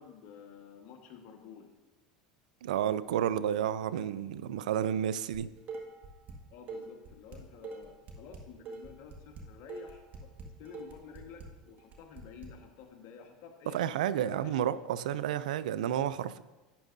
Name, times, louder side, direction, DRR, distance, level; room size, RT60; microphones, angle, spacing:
voice 1, 0.0-1.7 6.5-13.9 14.2-14.6, left 7 dB, 60° left, 4 dB, 1.4 m, -51 dB
voice 2, 2.6-5.5 13.7-16.4, right 10 dB, 85° right, 16 dB, 0.4 m, -31 dB
Dishes pots and pans, 5.3-6.4 6.7-12.5, right 4 dB, 45° right, 1.8 m, -44 dB
11.5 x 9.1 x 2.6 m, 1.2 s
supercardioid pair, 105°, 4 cm